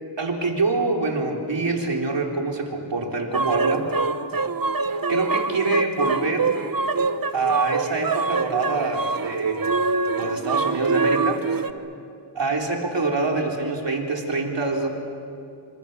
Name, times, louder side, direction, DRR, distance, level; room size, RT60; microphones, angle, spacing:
voice 1, 0.2-3.9 5.1-6.5 7.3-9.7 10.1-11.5 12.3-14.9, right 3 dB, 70° right, 1 dB, 3.9 m, -25 dB
sound 1, 3.3-11.7, right 4 dB, 50° right, 1.1 m, -25 dB
28.5 x 26.0 x 6.9 m, 2.5 s
wide cardioid pair, 75°, 45 cm